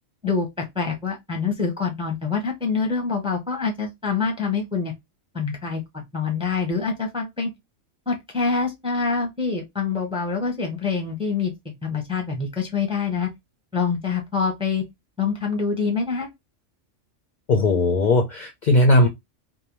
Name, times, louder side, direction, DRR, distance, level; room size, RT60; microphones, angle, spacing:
voice 1, 0.2-4.9 5.3-7.5 8.1-13.3 13.7-14.8 15.2-16.3, left 5 dB, 5° right, 0.5 m, -26 dB
voice 2, 17.5-19.1, left 1 dB, 60° left, 0.5 m, -18 dB
2.6 x 2.0 x 2.9 m
omnidirectional pair, 1.3 m